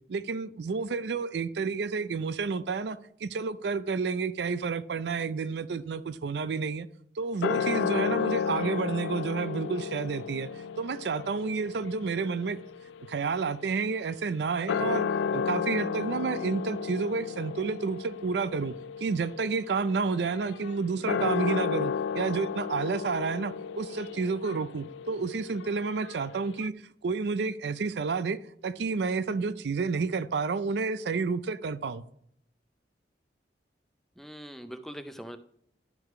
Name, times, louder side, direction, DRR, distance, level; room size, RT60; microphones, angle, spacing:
voice 1, 0.1-6.9 7.2-12.6 13.1-15.1 15.3-18.7 19.0-26.7 27.0-28.4 28.6-32.0, right 4 dB, 65° right, 0.4 m, -30 dB
sound 1, 7.4-14.0 14.5-26.7, left 6 dB, 85° left, 0.3 m, -33 dB
voice 2, 34.2-35.4, equal, ahead, 0.5 m, -42 dB
11.0 x 4.8 x 4.7 m
head